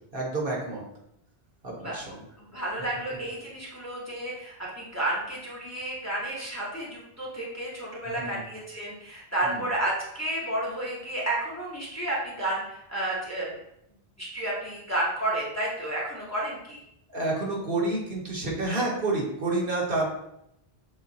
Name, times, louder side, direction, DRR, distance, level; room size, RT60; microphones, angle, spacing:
voice 1, 0.1-0.8 1.6-2.2 8.2-8.4 9.4-9.6 17.1-20.1, right 2 dB, 60° right, -3 dB, 1.3 m, -29 dB
voice 2, 2.4-13.6 14.2-16.8, right 1 dB, 15° left, -5 dB, 0.9 m, -31 dB
7.0 x 2.4 x 2.7 m, 0.78 s
omnidirectional pair, 1.0 m